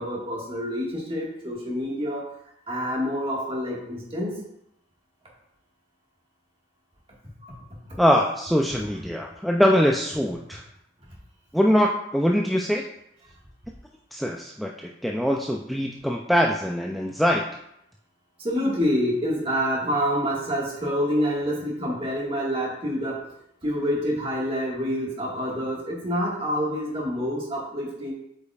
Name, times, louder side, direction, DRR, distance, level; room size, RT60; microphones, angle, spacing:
voice 1, 0.0-2.3 2.7-4.4 7.4-7.6 18.4-23.2 23.6-28.1, equal, 30° right, -3 dB, 1.7 m, -27 dB
voice 2, 8.0-10.6 11.5-12.9 14.1-17.4, equal, ahead, -1 dB, 0.3 m, -23 dB
8.1 x 5.2 x 2.4 m, 0.79 s
head